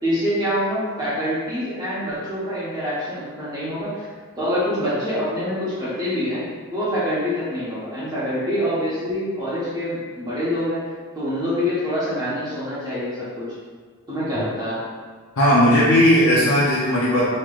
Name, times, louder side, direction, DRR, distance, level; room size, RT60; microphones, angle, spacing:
voice 1, 0.0-4.1 4.4-6.4 6.7-10.9 11.1-13.5 14.1-14.8, equal, 20° right, -10 dB, 1.2 m, -25 dB
voice 2, 15.4-17.2, equal, 75° left, -6 dB, 0.8 m, -16 dB
5.7 x 3.1 x 2.5 m, 1.5 s
head